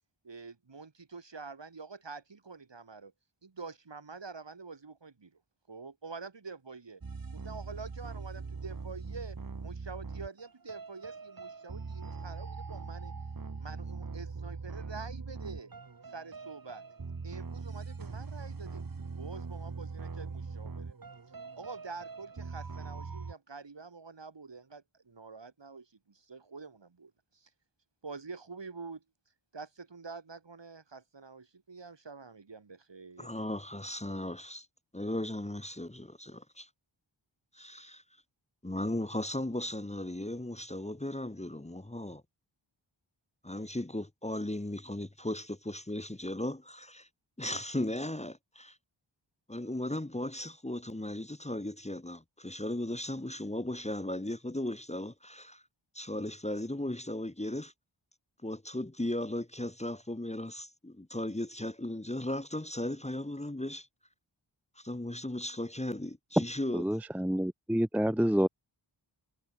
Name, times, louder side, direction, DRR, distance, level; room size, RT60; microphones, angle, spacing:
voice 1, 0.2-3.1 3.4-5.4 5.7-7.0 7.3-13.1 13.6-15.7 16.1-16.8 17.2-18.8 19.1-21.0 21.6-27.5 28.0-29.0 29.5-33.3, right 4 dB, 65° right, 2.2 m, -46 dB
sound 1, 7.0-23.3, right 4 dB, 45° right, 1.3 m, -42 dB
voice 2, 33.2-34.7 34.9-36.7 37.5-38.0 38.6-42.2 43.4-46.6 47.4-48.8 49.5-55.6 55.9-57.7 58.4-63.9 64.8-66.8, left 1 dB, 15° left, 1.1 m, -36 dB
voice 3, 66.7-68.5, equal, 5° right, 0.5 m, -27 dB
wide cardioid pair, 45°, 46 cm